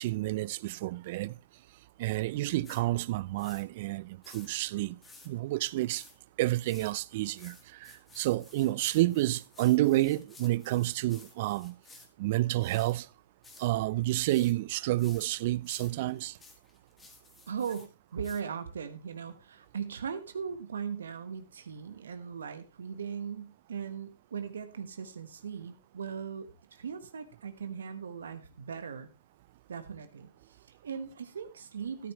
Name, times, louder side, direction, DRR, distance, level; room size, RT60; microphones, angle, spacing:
voice 1, 0.0-1.4 2.0-5.0 5.3-6.0 6.4-7.6 7.8-11.7 12.2-13.1 13.6-16.3, right 17 dB, 50° right, 0.4 m, -29 dB
sound 1, 2.6-2.8 3.4-3.6 4.2-4.5 5.0-5.3 5.9-6.2 6.6-6.9 7.4-12.1 12.6-12.9 13.4-13.7 14.3-14.5 15.0-15.3 15.6-17.9 18.2-18.4, left 3 dB, 10° left, 1.9 m, -54 dB
voice 2, 17.5-29.1 29.7-32.1, right 7 dB, 80° right, 1.2 m, -39 dB
12.5 x 10.0 x 3.1 m
hypercardioid pair, 130°, 0 cm